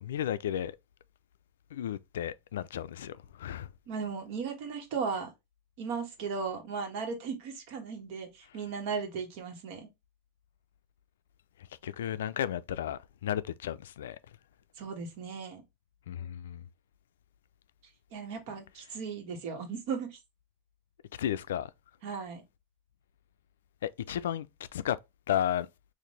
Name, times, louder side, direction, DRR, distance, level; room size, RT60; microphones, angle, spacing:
voice 1, 0.0-0.8 1.7-3.7 11.8-14.2 16.1-16.6 21.2-21.7 23.8-24.5 24.7-25.0 25.3-25.7, left 10 dB, 85° left, 0.3 m, -33 dB
voice 2, 3.9-5.3 5.8-9.9 14.8-15.6 18.1-20.2 22.0-22.4, right 5 dB, 60° right, 1.4 m, -36 dB
4.0 x 2.5 x 3.2 m
supercardioid pair, 125°, 0 cm